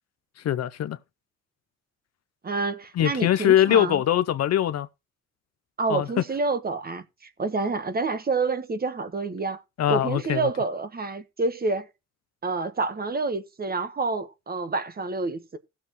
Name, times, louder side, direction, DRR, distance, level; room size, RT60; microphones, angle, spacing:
voice 1, 0.4-1.0 3.0-4.9 5.9-6.1 9.8-10.5, left 11 dB, 55° left, 0.7 m, -22 dB
voice 2, 2.4-4.0 5.8-9.6 9.9-11.9 12.4-15.6, right 3 dB, 30° right, 1.3 m, -28 dB
16.0 x 7.1 x 3.1 m
cardioid pair, 90°, 30 cm